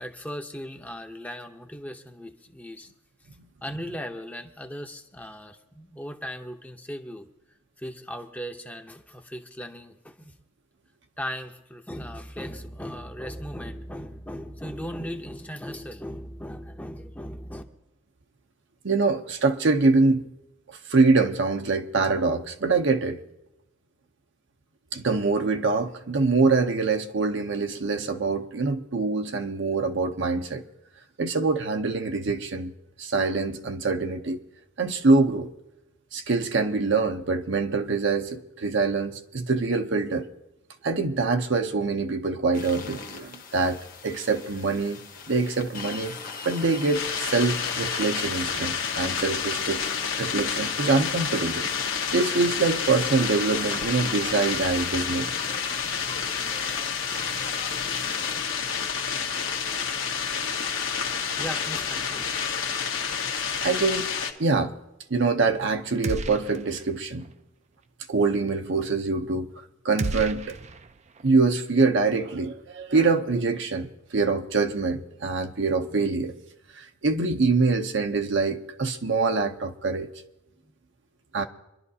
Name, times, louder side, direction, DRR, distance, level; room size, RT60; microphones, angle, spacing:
voice 1, 0.0-2.9 3.6-7.3 7.8-10.3 11.2-17.6 61.4-62.4, equal, 10° left, 0.7 m, -37 dB
voice 2, 18.8-20.2 20.7-23.2 24.9-30.6 31.2-32.7 33.0-34.4 34.8-35.5 36.1-40.3 40.8-46.2 46.4-51.7 52.1-55.3 63.6-64.1 64.4-64.7 65.1-67.2 68.1-69.5 69.8-70.6 71.2-76.4 76.7-80.1 81.3-81.4, right 3 dB, 65° right, 0.8 m, -24 dB
sound 1, 42.5-58.4, left 5 dB, 45° left, 1.2 m, -41 dB
sound 2, 46.9-64.3, left 6 dB, 70° left, 1.3 m, -29 dB
sound 3, 66.0-66.9 67.2-67.3 70.0-71.3, right 3 dB, 35° right, 0.4 m, -33 dB
25.5 x 11.5 x 2.8 m
head